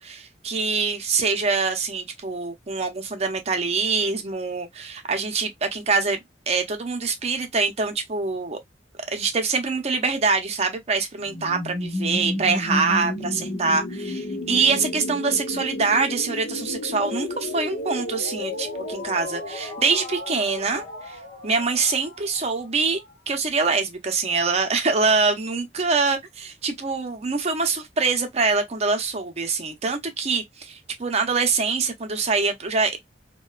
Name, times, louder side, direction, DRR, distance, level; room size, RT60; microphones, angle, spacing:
voice 1, 0.0-6.2 6.5-8.6 9.1-23.0 23.3-33.0, right 4 dB, 35° right, 0.6 m, -24 dB
sound 1, 11.2-23.0, left 1 dB, 85° left, 0.9 m, -32 dB
2.9 x 2.2 x 2.3 m
head